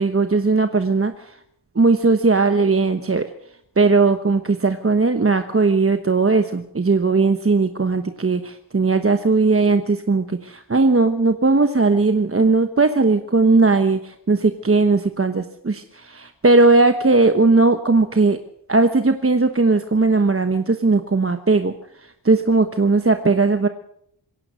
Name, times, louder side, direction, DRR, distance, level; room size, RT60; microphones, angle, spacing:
voice 1, 0.0-1.3 1.7-3.3 3.8-18.4 18.7-21.7 22.2-23.7, right 3 dB, 30° right, 8 dB, 1.1 m, -18 dB
26.0 x 16.5 x 6.4 m, 0.73 s
wide cardioid pair, 70°, 44 cm